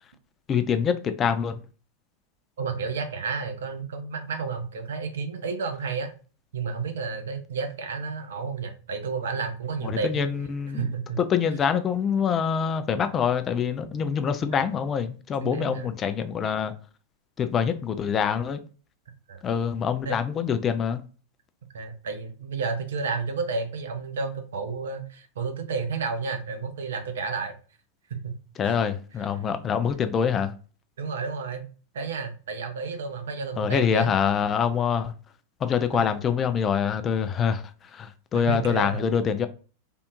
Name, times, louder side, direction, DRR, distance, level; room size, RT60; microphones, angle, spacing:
voice 1, 0.5-1.6 9.8-10.9 11.2-16.7 17.4-18.6 19.4-21.0 28.6-30.5 33.6-35.1 35.6-39.5, left 7 dB, 25° left, 0.3 m, -25 dB
voice 2, 2.6-6.1 6.5-10.3 10.7-11.2 14.6-14.7 15.4-15.9 19.3-19.4 20.0-20.2 21.7-27.5 28.1-28.3 28.6-28.8 31.0-31.7 31.9-34.1 38.3-39.0, right 4 dB, 60° right, 0.6 m, -31 dB
3.5 x 2.5 x 2.4 m
figure-of-eight pair, 90°, 0 cm